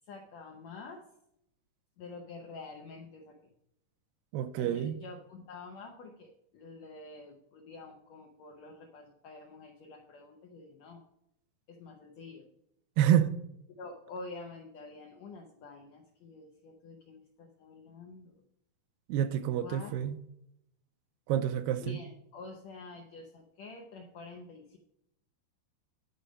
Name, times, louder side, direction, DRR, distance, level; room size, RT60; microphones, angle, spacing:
voice 1, 0.0-1.0 2.0-3.4 4.6-11.0 11.7-12.5 13.8-18.3 19.6-19.9 21.8-24.8, left 3 dB, 75° left, 1.6 m, -48 dB
voice 2, 4.3-5.0 13.0-13.4 19.1-20.2 21.3-22.0, right 10 dB, 80° right, 2.3 m, -28 dB
11.0 x 4.9 x 5.2 m
omnidirectional pair, 4.2 m